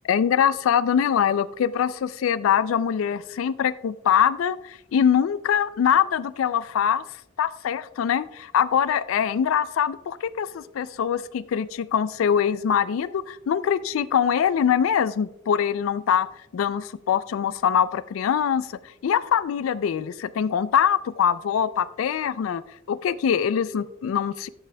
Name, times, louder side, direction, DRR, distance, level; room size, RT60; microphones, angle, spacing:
voice 1, 0.1-7.0 7.4-16.3 16.5-18.7 19.0-24.5, left 8 dB, 90° left, 17 dB, 0.3 m, -23 dB
12.0 x 8.1 x 2.2 m, 0.85 s
head